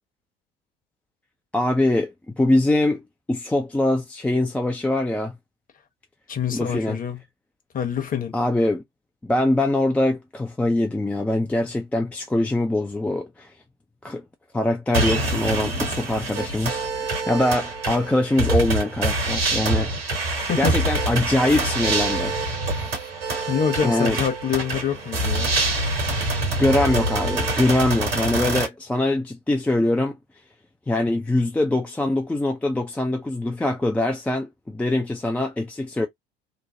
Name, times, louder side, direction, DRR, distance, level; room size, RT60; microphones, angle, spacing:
voice 1, 1.5-3.0 3.3-5.3 6.5-7.0 8.3-8.8 9.2-13.5 14.0-14.2 14.5-20.2 20.6-22.4 23.8-24.2 26.6-30.2 30.9-36.1, left 1 dB, 5° left, 0.3 m, -23 dB
voice 2, 6.3-7.2 7.7-8.3 20.3-20.8 23.5-25.5, left 7 dB, 30° left, 1.0 m, -26 dB
sound 1, 14.9-28.7, right 2 dB, 80° right, 1.3 m, -25 dB
3.1 x 2.0 x 2.7 m
figure-of-eight pair, 65°, 29 cm